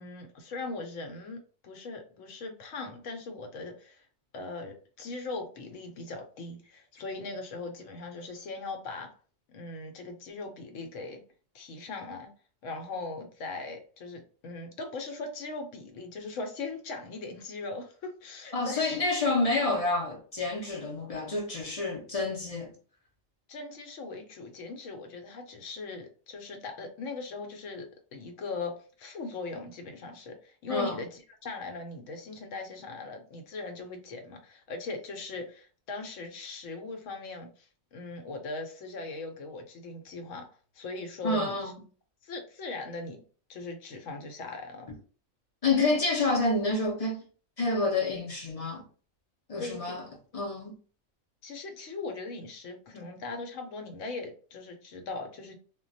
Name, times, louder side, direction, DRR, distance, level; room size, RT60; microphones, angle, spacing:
voice 1, 0.0-4.1 4.3-9.1 9.5-11.2 11.5-12.3 12.6-19.0 23.5-40.5 40.7-41.6 42.2-43.2 43.5-44.9 49.6-50.0 51.4-55.6, left 3 dB, 70° left, 1.0 m, -39 dB
voice 2, 18.5-22.7 30.7-31.0 41.2-41.8 45.6-47.2 47.6-48.8 49.5-50.0 50.3-50.7, left 3 dB, 40° left, 0.5 m, -28 dB
2.2 x 2.2 x 3.9 m
omnidirectional pair, 1.4 m